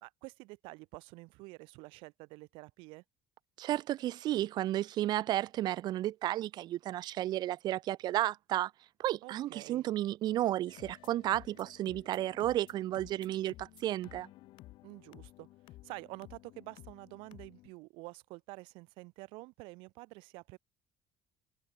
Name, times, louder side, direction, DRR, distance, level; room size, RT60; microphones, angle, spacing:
voice 1, 0.0-3.0 9.2-9.8 14.8-15.5 15.8-20.6, right 25 dB, 85° right, 1.5 m, -48 dB
voice 2, 3.6-8.7 9.0-14.3, right 14 dB, 55° right, 0.5 m, -33 dB
sound 1, 10.7-17.7, left 17 dB, 70° left, 1.3 m, -55 dB
cardioid pair, 115°, 9 cm